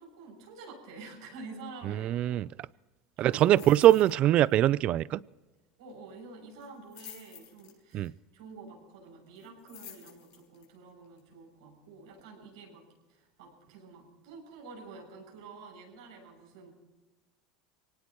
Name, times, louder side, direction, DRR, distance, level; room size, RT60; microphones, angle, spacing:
voice 1, 0.0-2.2 3.2-3.7 5.8-16.7, right 4 dB, 85° right, 0 dB, 7.2 m, -49 dB
voice 2, 2.0-2.5 3.2-5.2 7.9-8.1, right 13 dB, 50° right, 22 dB, 0.4 m, -22 dB
sound 1, 3.3-4.2 4.4-4.7 5.0-5.1 6.6-8.1 9.3-10.6 11.2-11.3, left 11 dB, 70° left, 5.6 m, -50 dB
24.0 x 18.0 x 3.1 m, 1.2 s
supercardioid pair, 105°, 3 cm